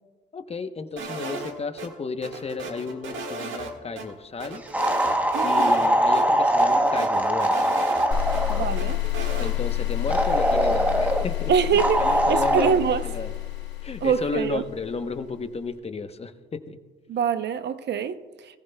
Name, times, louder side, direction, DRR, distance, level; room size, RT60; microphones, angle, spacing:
voice 1, 0.3-4.6 5.4-7.8 9.4-13.3 13.8-16.8, left 4 dB, 30° left, 0.9 m, -33 dB
sound 1, 1.0-1.9 2.2-3.7 4.0-4.1 4.4-5.9 6.1-6.2 6.6-8.4 8.8-9.5, right 3 dB, 80° right, 1.7 m, -35 dB
sound 2, 4.7-8.7 10.1-11.3 11.8-12.7, right 1 dB, 5° right, 0.9 m, -22 dB
voice 2, 5.3-5.8 8.5-9.0 11.5-13.0 14.0-14.6 17.1-18.2, right 7 dB, 60° right, 0.7 m, -24 dB
sound 3, 8.1-15.2, left 15 dB, 75° left, 3.5 m, -29 dB
20.5 x 14.5 x 2.2 m
cardioid pair, 90°, 20 cm